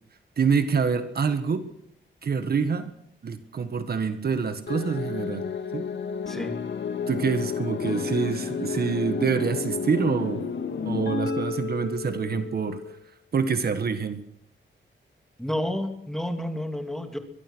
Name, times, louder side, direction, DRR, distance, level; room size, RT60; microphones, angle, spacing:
voice 1, 0.4-1.7 2.2-2.9 3.2-5.8 7.1-10.4 10.8-12.8 13.3-14.2, right 5 dB, 50° right, 9 dB, 1.6 m, -26 dB
sound 1, 4.7-13.1, left 5 dB, 65° left, 2.1 m, -31 dB
voice 2, 6.3-6.6 15.4-17.2, left 1 dB, ahead, 5 dB, 2.6 m, -30 dB
23.0 x 21.0 x 6.3 m, 0.67 s
wide cardioid pair, 155°, 20 cm